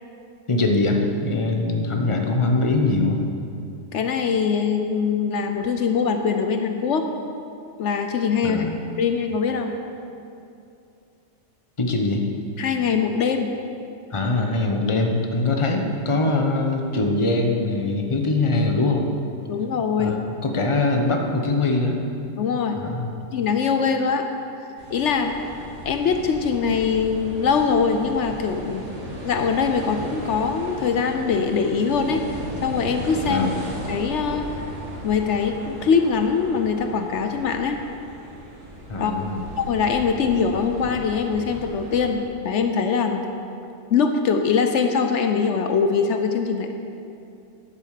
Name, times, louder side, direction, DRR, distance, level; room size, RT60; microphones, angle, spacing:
voice 1, 0.5-3.2 8.4-8.7 11.8-12.2 14.1-19.1 20.0-22.0 22.8-23.1 33.2-33.6 38.9-39.4, left 2 dB, 25° left, 3 dB, 1.0 m, -22 dB
voice 2, 3.9-7.1 7.8-8.7 9.0-9.7 12.6-13.5 19.5-20.2 22.4-22.8 23.3-24.3 24.9-25.4 25.8-28.9 29.2-32.2 32.6-33.5 33.9-34.4 35.0-37.8 39.0-39.1 39.6-43.2 43.9-46.7, left 6 dB, 70° left, 6 dB, 1.0 m, -22 dB
sound 1, 24.8-42.1, right 1 dB, 70° right, 2.3 m, -36 dB
10.5 x 8.5 x 6.6 m, 2.6 s
omnidirectional pair, 1.3 m